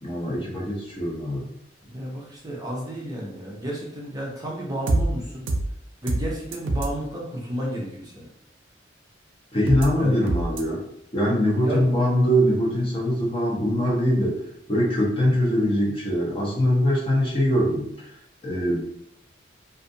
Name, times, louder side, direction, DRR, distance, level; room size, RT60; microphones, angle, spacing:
voice 1, 0.0-1.5 9.5-10.8 11.1-14.4 14.7-18.1 18.4-18.8, equal, 30° left, -4 dB, 0.7 m, -22 dB
voice 2, 1.8-5.5 6.0-8.3 10.0-10.2 11.6-11.8, equal, 20° right, -4 dB, 0.5 m, -32 dB
sound 1, 4.9-5.0 5.5-5.6 6.1-6.2 6.5-6.9 9.7-9.9 10.3-10.6, right 2 dB, 90° right, 0.4 m, -24 dB
2.5 x 2.4 x 2.6 m, 0.73 s
head